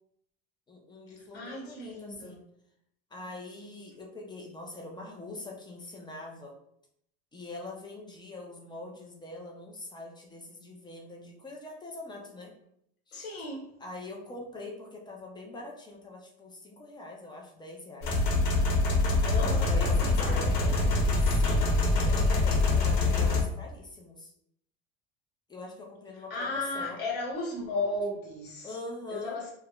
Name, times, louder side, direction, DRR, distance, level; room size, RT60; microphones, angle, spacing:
voice 1, 0.7-2.4 3.1-6.6 7.3-12.5 13.1-13.4 13.8-18.2 19.2-24.3 25.5-27.0 28.6-29.4, left 2 dB, 15° left, -1 dB, 0.4 m, -43 dB
voice 2, 1.3-2.4 13.1-13.7 19.3-20.9 26.3-28.8 29.1-29.5, left 2 dB, 30° left, -3 dB, 1.0 m, -35 dB
sound 1, 18.0-23.4, left 2 dB, 55° left, 0.9 m, -25 dB
3.4 x 2.0 x 2.3 m, 0.71 s
supercardioid pair, 120°, 32 cm